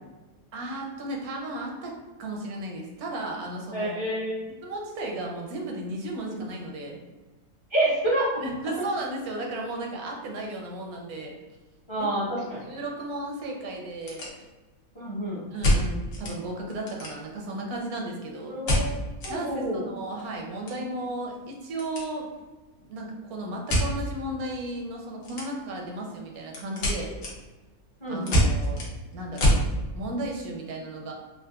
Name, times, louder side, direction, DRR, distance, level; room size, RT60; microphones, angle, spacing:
voice 1, 0.5-4.0 4.6-7.0 8.4-11.3 12.0-12.1 12.4-14.3 15.5-18.5 19.3-22.3 22.8-27.1 28.1-28.8 29.1-29.5 29.9-31.1, right 1 dB, 85° right, 0 dB, 1.2 m, -34 dB
voice 2, 3.7-4.3 6.3-6.4 7.7-8.4 8.8-8.9 11.9-12.6 14.9-15.4 18.5-19.8 28.0-28.4, right 1 dB, 30° left, -7 dB, 0.6 m, -28 dB
sound 1, 11.6-11.8 12.1-12.2 12.8-12.9 13.2-13.3 13.8-14.8 15.6-16.4 16.7-17.5 18.7-19.3 19.7-19.8 20.1-22.1 22.3-22.6 23.7-23.9 25.2-25.8 26.1-29.7, equal, 65° left, 1.2 m, -26 dB
3.8 x 2.4 x 2.3 m, 1.2 s
omnidirectional pair, 1.5 m